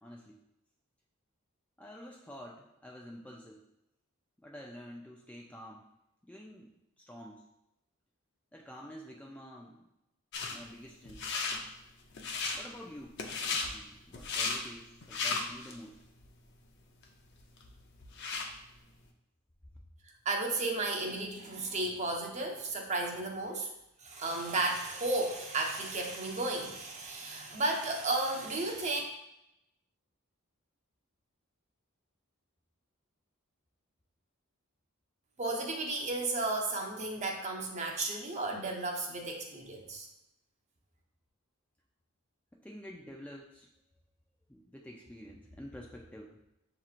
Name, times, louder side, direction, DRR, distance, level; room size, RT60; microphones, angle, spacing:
voice 1, 0.0-0.4 1.8-3.7 4.4-5.9 6.2-7.5 8.5-9.9 10.5-11.3 12.5-13.2 13.6-16.0 42.5-43.7 44.5-46.4, equal, 5° left, -1 dB, 0.3 m, -49 dB
sound 1, 10.3-10.6 11.1-11.6 12.1-12.6 13.2-13.7 14.1-14.6 15.0-15.7 16.2-16.3 17.0-17.1 17.4-18.5, left 4 dB, 55° left, 0.6 m, -34 dB
voice 2, 20.2-23.7 24.0-29.0 35.4-40.1, right 2 dB, 35° right, 1 dB, 0.7 m, -33 dB
7.5 x 2.9 x 2.4 m, 0.87 s
head